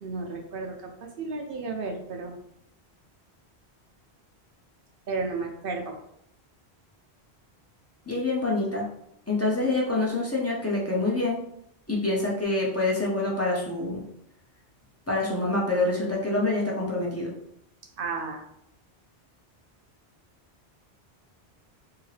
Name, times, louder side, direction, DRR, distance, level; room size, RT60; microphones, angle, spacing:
voice 1, 0.0-0.9 1.2-2.3 5.1-5.9 18.0-18.4, right 4 dB, 60° right, 1 dB, 0.7 m, -32 dB
voice 2, 8.1-8.9 9.3-11.4 11.9-14.0 15.1-17.3, left 2 dB, 15° left, -4 dB, 0.6 m, -26 dB
2.8 x 2.8 x 3.2 m, 0.75 s
omnidirectional pair, 1.1 m